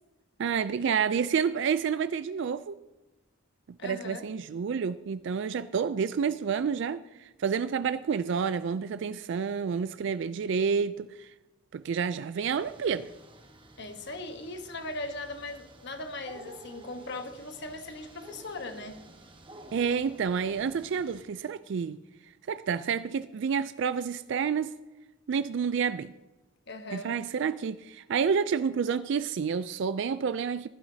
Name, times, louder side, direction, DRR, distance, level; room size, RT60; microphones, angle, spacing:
voice 1, 0.4-2.8 3.8-11.3 11.7-13.1 19.7-22.0 22.5-24.7 25.3-26.1 26.9-30.7, right 6 dB, 60° right, 0.3 m, -29 dB
voice 2, 3.8-4.3 13.8-19.1 26.7-27.2, left 2 dB, 60° left, 1.1 m, -39 dB
sound 1, 12.5-21.2, right 2 dB, 25° right, 1.1 m, -52 dB
15.0 x 11.5 x 2.7 m
head